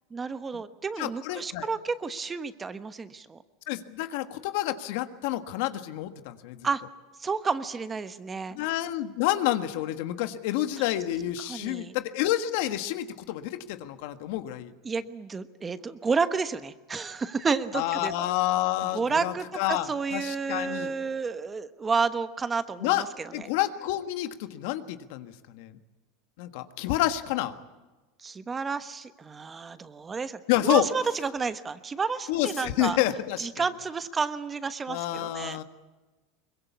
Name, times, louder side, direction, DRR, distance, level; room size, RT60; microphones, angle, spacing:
voice 1, 0.1-3.4 6.6-6.8 7.2-8.6 11.5-11.9 14.8-18.3 18.9-23.5 28.2-33.0 33.4-35.6, right 5 dB, 20° right, 11 dB, 1.1 m, -31 dB
voice 2, 1.0-1.7 3.7-6.6 8.5-14.7 17.7-20.9 22.8-23.0 23.3-25.8 26.4-27.6 30.5-30.8 32.3-33.5 34.9-35.6, left 14 dB, 70° left, 9 dB, 1.5 m, -29 dB
23.0 x 21.0 x 8.4 m, 1.2 s
supercardioid pair, 120°, 0 cm